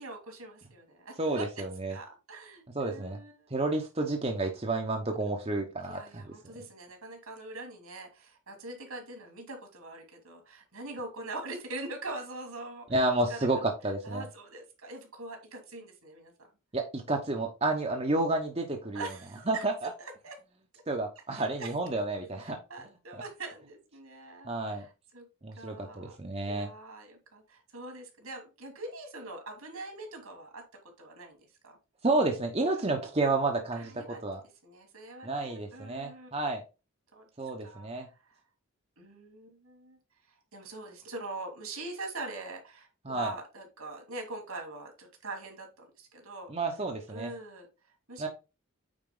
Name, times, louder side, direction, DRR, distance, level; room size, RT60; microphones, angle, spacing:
voice 1, 0.0-1.5 1.9-3.5 5.8-12.9 13.3-13.5 14.0-16.3 18.9-19.6 20.0-20.3 20.7-20.8 21.3-21.7 22.4-25.3 25.6-26.2 26.4-30.6 31.0-31.8 32.7-32.9 33.7-34.2 34.6-36.4 37.1-37.3 37.6-38.3 39.0-40.0 40.5-46.5 47.1-47.7 48.1-48.3, right 2 dB, 80° right, 3 dB, 2.9 m, -43 dB
voice 2, 1.2-2.0 2.7-3.2 3.5-6.3 12.9-14.3 16.7-19.1 19.5-19.9 20.9-22.6 24.4-24.9 25.4-26.7 32.0-34.4 35.2-36.6 37.4-38.1 43.0-43.3 46.5-47.3 48.2-48.3, right 2 dB, 25° right, 2 dB, 1.0 m, -30 dB
8.9 x 4.5 x 3.7 m, 0.29 s
head